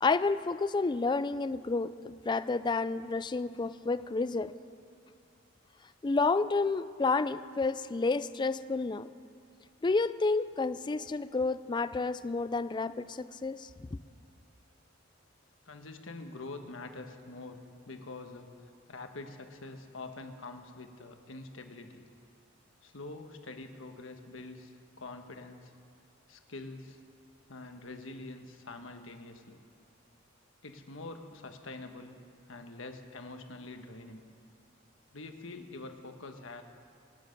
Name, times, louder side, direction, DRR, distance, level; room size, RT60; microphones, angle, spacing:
voice 1, 0.0-4.5 6.0-9.1 9.8-13.7, left 3 dB, 25° left, 14 dB, 0.4 m, -30 dB
voice 2, 15.6-17.6 17.8-22.1 22.8-25.7 26.3-27.0 27.5-29.6 30.6-32.2 32.5-34.2 35.1-36.6, left 2 dB, 85° left, 6 dB, 1.3 m, -45 dB
25.0 x 9.9 x 5.3 m, 2.4 s
head